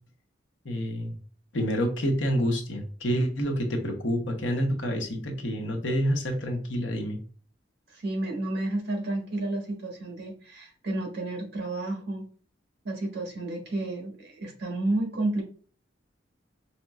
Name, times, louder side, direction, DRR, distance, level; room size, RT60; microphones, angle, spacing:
voice 1, 0.6-1.2 1.5-7.2, equal, 75° left, 2 dB, 0.9 m, -28 dB
voice 2, 7.9-12.2 12.8-15.4, right 2 dB, 60° right, 0 dB, 1.5 m, -31 dB
5.0 x 2.9 x 2.3 m, 0.43 s
head